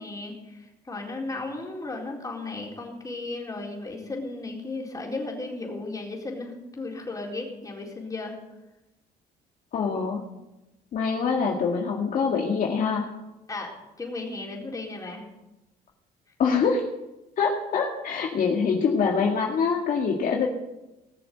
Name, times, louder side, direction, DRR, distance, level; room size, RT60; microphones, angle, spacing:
voice 1, 0.0-8.4 13.5-15.3, left 2 dB, 20° left, -1 dB, 4.3 m, -35 dB
voice 2, 9.7-10.2 10.9-13.1 16.4-16.8 17.4-20.5, left 5 dB, 55° left, 0 dB, 2.0 m, -24 dB
19.5 x 7.0 x 7.9 m, 0.98 s
cardioid pair, 110°, 17 cm